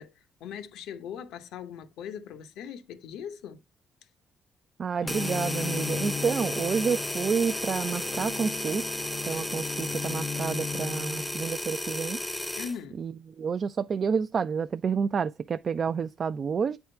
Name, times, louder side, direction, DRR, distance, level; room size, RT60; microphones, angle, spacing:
voice 1, 0.0-3.6 12.6-13.0, left 7 dB, 90° left, 0.8 m, -40 dB
voice 2, 4.8-8.8 9.2-12.2 13.0-16.8, right 6 dB, 50° right, 0.3 m, -29 dB
Bowed string instrument, 5.0-11.7, left 6 dB, 50° left, 0.4 m, -37 dB
sound 1, 5.1-12.8, left 1 dB, 5° left, 0.6 m, -33 dB
8.6 x 3.6 x 4.4 m
cardioid pair, 90°, 0 cm